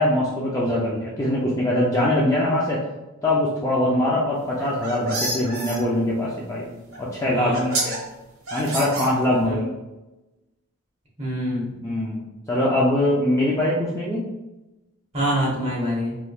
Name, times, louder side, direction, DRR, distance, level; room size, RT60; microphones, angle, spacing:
voice 1, 0.0-2.8 3.2-6.7 7.0-8.0 8.5-9.7 11.8-12.2 12.5-14.2, left 1 dB, 15° left, -5 dB, 0.3 m, -22 dB
sound 1, 4.5-5.8 6.9-7.0 7.5-8.0 8.5-9.5, right 2 dB, 70° right, 0.9 m, -28 dB
voice 2, 7.3-7.7 9.4-9.6 11.2-11.7 15.1-16.2, equal, 30° right, -6 dB, 1.1 m, -25 dB
3.4 x 2.9 x 2.3 m, 1.0 s
head